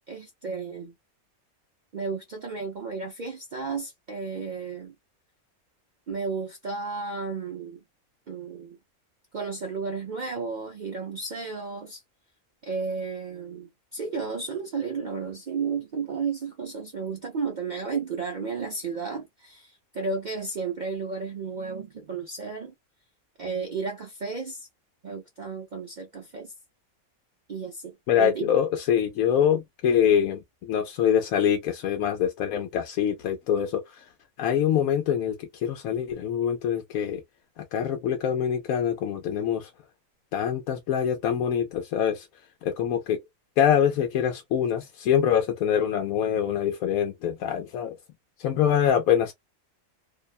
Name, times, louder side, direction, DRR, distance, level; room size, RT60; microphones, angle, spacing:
voice 1, 0.1-0.9 1.9-4.9 6.1-7.8 8.3-8.8 9.3-12.0 12.6-22.7 23.4-24.7 25.0-26.5 27.5-28.5, right 5 dB, 85° right, 0.4 m, -33 dB
voice 2, 28.1-34.1 34.4-37.2 37.6-39.7 40.3-42.3 42.6-43.2 43.6-48.0 48.4-49.3, left 9 dB, 80° left, 1.0 m, -24 dB
2.7 x 2.1 x 2.3 m
omnidirectional pair, 1.5 m